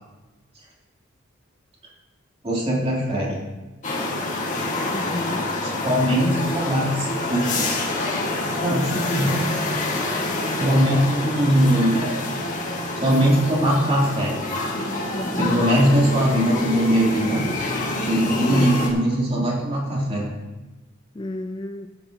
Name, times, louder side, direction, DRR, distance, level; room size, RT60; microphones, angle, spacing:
voice 1, 2.4-3.3 5.8-7.8 8.6-9.4 10.6-12.0 13.0-14.4 15.4-17.4 18.0-20.3, equal, 30° right, -5 dB, 3.2 m, -21 dB
sound 1, 3.8-18.9, left 2 dB, 40° left, 1.8 m, -27 dB
voice 2, 4.9-5.5 15.1-15.7 18.3-18.7 21.1-21.9, left 2 dB, 25° left, 6 dB, 0.4 m, -31 dB
13.5 x 10.0 x 2.9 m, 1.1 s
head